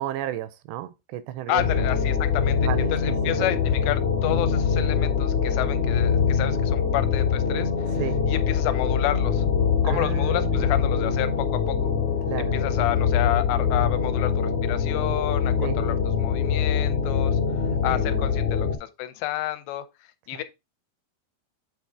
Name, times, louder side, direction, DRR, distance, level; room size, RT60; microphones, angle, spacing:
voice 1, 0.0-1.6 2.6-3.6 8.0-8.2 9.8-10.7 12.3-12.6 15.6-15.8 17.6-18.4 20.3-20.4, right 13 dB, 85° right, 2.7 m, -33 dB
voice 2, 1.5-2.6 2.9-7.7 8.3-9.4 9.8-11.9 12.4-17.4 17.8-19.9 20.3-20.4, left 14 dB, 85° left, 2.8 m, -30 dB
sound 1, 1.6-18.8, left 6 dB, 70° left, 1.9 m, -23 dB
8.5 x 3.8 x 3.5 m
omnidirectional pair, 5.0 m